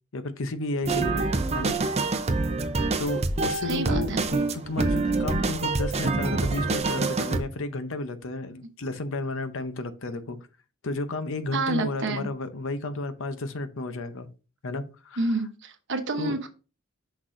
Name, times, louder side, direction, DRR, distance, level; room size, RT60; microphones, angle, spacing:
voice 1, 0.1-1.8 3.0-10.4 10.8-14.3 14.6-15.4 16.2-16.4, left 2 dB, 65° left, 0.7 m, -32 dB
sound 1, 0.8-7.4, right 3 dB, 30° right, 0.6 m, -26 dB
voice 2, 3.6-4.2 11.5-12.3 15.2-16.5, right 3 dB, 55° right, 1.0 m, -28 dB
6.2 x 6.0 x 2.6 m
head